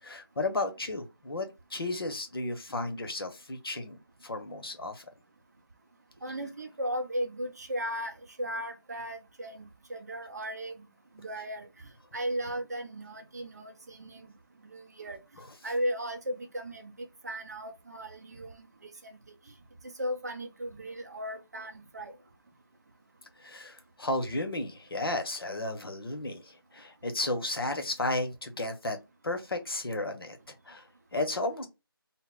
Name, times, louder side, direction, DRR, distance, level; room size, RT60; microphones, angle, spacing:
voice 1, 0.0-5.0 15.4-15.5 23.4-29.0 29.2-31.7, left 2 dB, 70° left, 0.7 m, -34 dB
voice 2, 6.2-10.9 11.2-11.7 12.1-14.3 14.6-15.2 15.6-18.9 19.8-22.1, equal, 45° right, 0.5 m, -36 dB
2.0 x 2.0 x 3.6 m
figure-of-eight pair, 160°, 13 cm